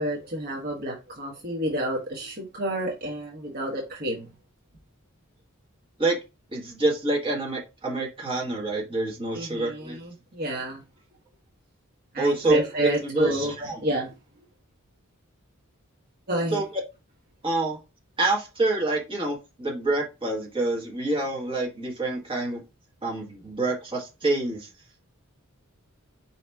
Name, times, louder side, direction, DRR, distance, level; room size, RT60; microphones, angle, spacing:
voice 1, 0.0-4.3 9.3-10.8 12.1-13.5 13.8-14.1 16.3-16.6, equal, 45° right, 1.1 m, -29 dB
voice 2, 6.5-10.0 12.2-12.6 13.0-13.8 16.5-16.6 17.4-17.8 18.2-22.6 23.0-24.7, right 2 dB, 25° right, 1.4 m, -27 dB
4.8 x 2.9 x 3.4 m
head